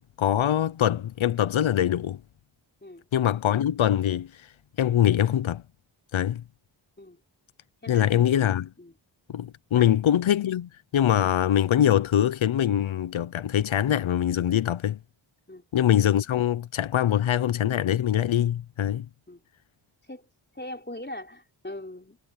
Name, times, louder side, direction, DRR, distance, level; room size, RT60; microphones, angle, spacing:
voice 1, 0.2-2.2 3.1-4.5 4.8-5.6 6.1-6.4 7.9-8.7 9.3-15.0 15.7-19.1, left 10 dB, 85° left, 0.6 m, -23 dB
voice 2, 7.8-8.2 8.8-8.9 9.7-9.9 15.5-15.6 19.3-19.4 20.1-20.3 20.5-22.2, left 1 dB, 20° left, 4.3 m, -40 dB
cardioid pair, 45°, 46 cm